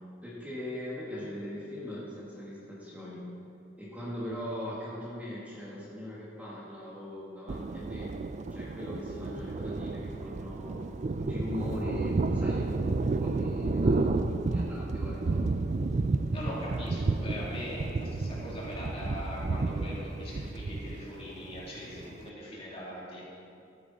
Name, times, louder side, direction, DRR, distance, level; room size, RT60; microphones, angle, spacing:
voice 1, 0.2-3.2 3.8-8.1 8.5-10.9 11.2-12.7 13.0-15.4, left 1 dB, 10° right, -7 dB, 1.8 m, -40 dB
Thunder, 7.5-22.3, right 3 dB, 40° right, 0.4 m, -31 dB
voice 2, 16.3-23.3, left 1 dB, 35° left, -7 dB, 3.0 m, -41 dB
12.5 x 9.5 x 4.2 m, 2.6 s
head